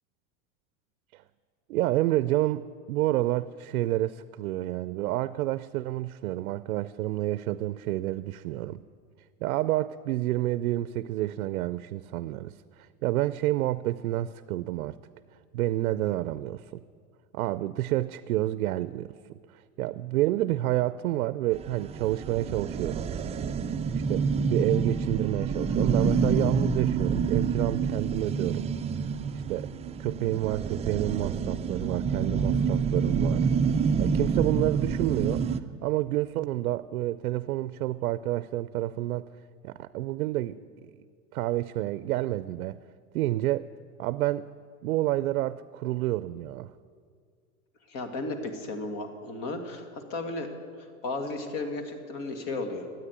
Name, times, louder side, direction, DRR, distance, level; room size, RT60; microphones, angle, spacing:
voice 1, 1.7-8.8 9.4-15.0 15.5-16.8 17.3-19.4 19.8-23.1 24.1-28.7 29.5-29.7 30.0-33.5 34.0-35.4 35.8-39.2 39.6-40.6 41.3-42.8 43.1-43.7 44.0-44.5 44.8-46.7, right 15 dB, 85° right, 16 dB, 0.5 m, -29 dB
sound 1, 21.6-35.6, right 5 dB, 15° right, 0.4 m, -27 dB
voice 2, 47.9-50.5 51.0-52.9, left 2 dB, 50° left, 6 dB, 2.2 m, -34 dB
13.0 x 9.1 x 9.7 m, 2.1 s
hypercardioid pair, 105°, 42 cm